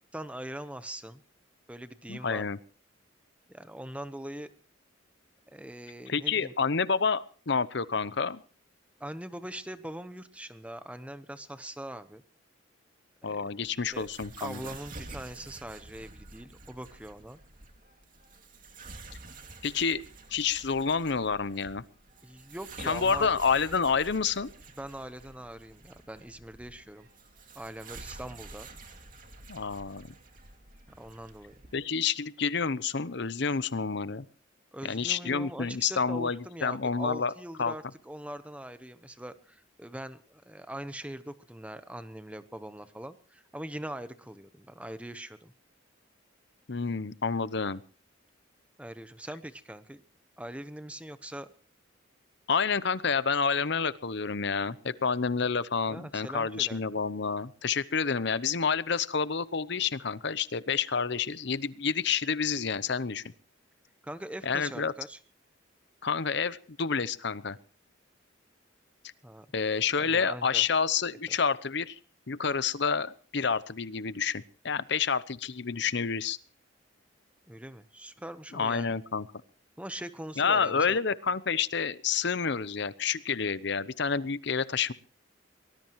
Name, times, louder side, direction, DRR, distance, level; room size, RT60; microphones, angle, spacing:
voice 1, 0.1-1.2 1.7-2.4 3.5-4.5 5.5-6.5 9.0-12.2 13.2-13.4 13.7-14.1 14.4-17.4 22.2-23.3 24.8-27.1 27.5-28.7 31.0-31.5 34.7-45.5 48.8-50.0 50.4-51.5 55.9-56.8 64.0-65.2 69.2-69.5 70.0-70.6 77.5-79.0 79.8-81.0, right 1 dB, 5° right, 11 dB, 0.9 m, -42 dB
voice 2, 2.1-2.6 6.1-8.4 13.2-14.6 19.6-20.0 20.3-21.8 22.8-24.5 29.5-30.1 31.7-34.3 34.8-37.3 37.6-37.7 46.7-47.8 52.5-63.2 64.4-64.9 66.0-67.6 69.5-72.0 72.3-76.4 78.5-79.3 80.4-84.9, left 5 dB, 60° left, 16 dB, 0.8 m, -29 dB
sound 1, 13.6-31.7, right 3 dB, 40° right, 2.5 m, -49 dB
23.5 x 19.5 x 3.1 m, 0.40 s
head